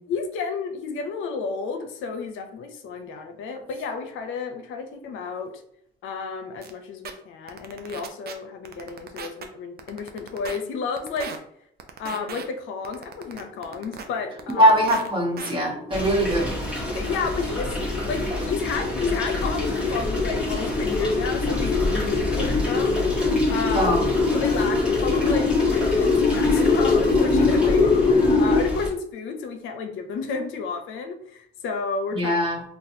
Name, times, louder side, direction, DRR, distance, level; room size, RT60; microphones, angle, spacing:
voice 1, 0.1-5.5 6.0-11.3 12.0-14.7 16.9-17.7 18.1-23.2 23.5-23.9 24.3-32.4, left 5 dB, 85° left, 6 dB, 0.5 m, -31 dB
sound 1, 6.6-6.7 7.0-7.1 7.5-8.3 8.6-9.4 9.8-10.6 11.0-11.4 11.8-12.4 12.8-14.0 14.4-15.1 15.4-15.5, right 6 dB, 55° right, 0.5 m, -36 dB
sound 2, 14.2-28.6, left 4 dB, 35° left, 0.6 m, -23 dB
voice 2, 14.5-16.5 23.7-24.1 32.1-32.6, equal, 25° right, -2 dB, 1.2 m, -21 dB
sound 3, 15.9-28.9, left 1 dB, 5° right, 1.1 m, -30 dB
4.0 x 2.3 x 2.7 m, 0.69 s
cardioid pair, 90°, 20 cm